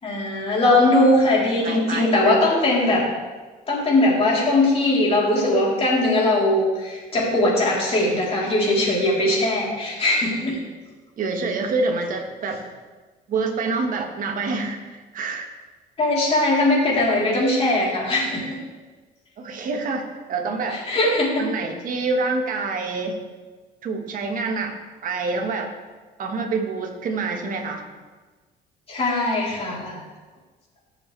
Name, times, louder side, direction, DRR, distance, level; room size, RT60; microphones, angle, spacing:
voice 1, 0.0-3.1 3.7-10.6 16.0-18.6 20.7-21.5 28.9-30.0, left 1 dB, 35° left, -5 dB, 3.7 m, -20 dB
voice 2, 1.6-2.4 11.2-12.6 13.3-15.5 19.4-20.8 21.4-23.2 23.8-24.8 25.0-25.7 26.2-27.8, right 3 dB, 55° right, 3 dB, 1.6 m, -27 dB
15.0 x 7.0 x 3.4 m, 1.3 s
cardioid pair, 110°, 17 cm